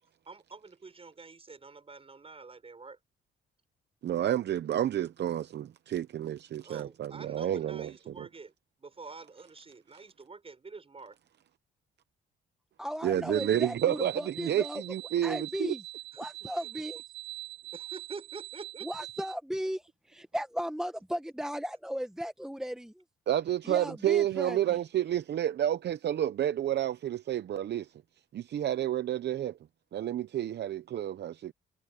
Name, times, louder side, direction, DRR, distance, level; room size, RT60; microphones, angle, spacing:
voice 1, 0.0-3.0 6.6-8.5 8.8-11.2 16.1-16.3 16.6-16.7 17.6-19.1, right 4 dB, 30° right, 6.7 m, -47 dB
voice 2, 4.0-7.9 8.2-8.3 13.0-15.7 23.3-27.9 28.3-29.6 29.9-31.5, right 11 dB, 60° right, 0.8 m, -30 dB
voice 3, 12.8-14.8 15.2-15.8 16.2-17.0 18.8-23.0 23.6-24.8, equal, 5° right, 1.3 m, -36 dB
sound 1, 13.3-19.3, right 15 dB, 85° right, 5.7 m, -43 dB
cardioid pair, 90°, 20 cm